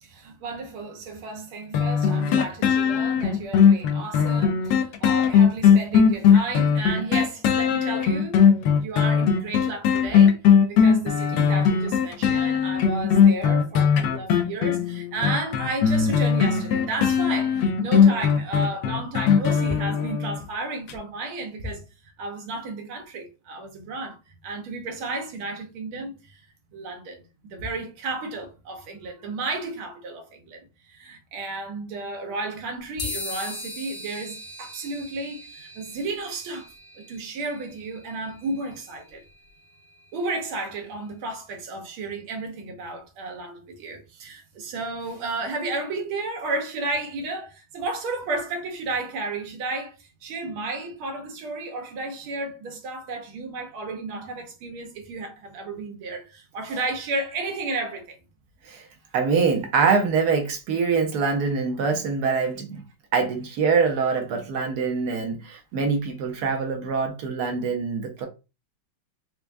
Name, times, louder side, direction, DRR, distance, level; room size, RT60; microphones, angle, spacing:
voice 1, 0.0-8.4 8.8-21.8 22.2-24.2 24.4-26.4 26.7-36.7 37.0-39.2 40.1-50.0 50.2-58.2, right 3 dB, 85° right, 1.7 m, -33 dB
sound 1, 1.7-20.4 20.9-21.0, left 7 dB, 75° left, 1.1 m, -19 dB
sound 2, 33.0-40.7, left 2 dB, 45° left, 1.1 m, -40 dB
voice 2, 59.1-62.8 63.1-68.3, right 5 dB, 70° right, 0.9 m, -24 dB
4.4 x 2.2 x 2.5 m
omnidirectional pair, 2.3 m